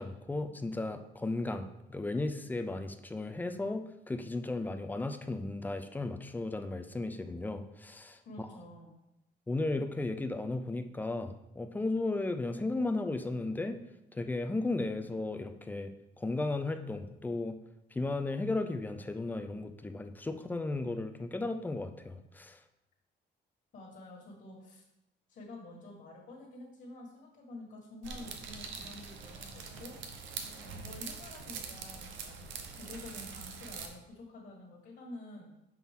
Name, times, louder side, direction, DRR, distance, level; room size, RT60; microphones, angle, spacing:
voice 1, 0.0-8.5 9.5-13.8 14.1-15.9 16.2-17.6 17.9-22.6, left 2 dB, 10° left, 8 dB, 0.4 m, -35 dB
voice 2, 8.2-9.0 23.7-24.8 25.3-30.2 30.6-32.4 32.7-35.5, left 2 dB, 50° left, -3 dB, 1.7 m, -49 dB
sound 1, 28.0-33.9, right 5 dB, 90° right, 0.8 m, -44 dB
6.0 x 5.5 x 3.7 m, 0.88 s
cardioid pair, 155°, 19 cm